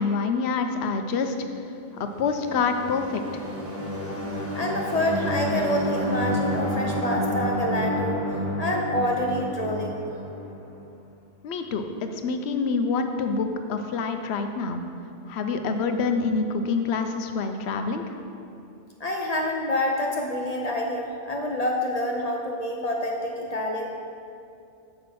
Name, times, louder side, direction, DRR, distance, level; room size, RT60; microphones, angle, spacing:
voice 1, 0.0-1.3 1.9-3.4 11.4-14.8 15.3-18.0, left 4 dB, 65° left, 6 dB, 0.8 m, -26 dB
sound 1, 2.2-10.9, equal, 15° right, 1.0 m, -30 dB
voice 2, 4.5-8.2 8.6-10.0 19.0-23.9, left 1 dB, 50° left, 0 dB, 0.5 m, -27 dB
7.4 x 6.0 x 4.7 m, 2.6 s
omnidirectional pair, 1.2 m